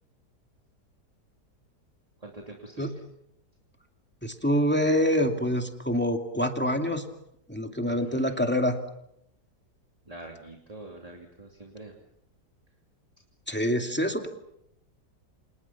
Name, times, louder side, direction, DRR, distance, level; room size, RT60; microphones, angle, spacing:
voice 1, 2.2-2.9 7.8-8.4 10.1-11.9, right 2 dB, 20° right, 1 dB, 2.8 m, -45 dB
voice 2, 4.2-7.0 7.5-8.8 13.5-14.3, equal, 5° left, 4 dB, 2.4 m, -26 dB
29.5 x 27.0 x 5.9 m, 0.78 s
omnidirectional pair, 1.8 m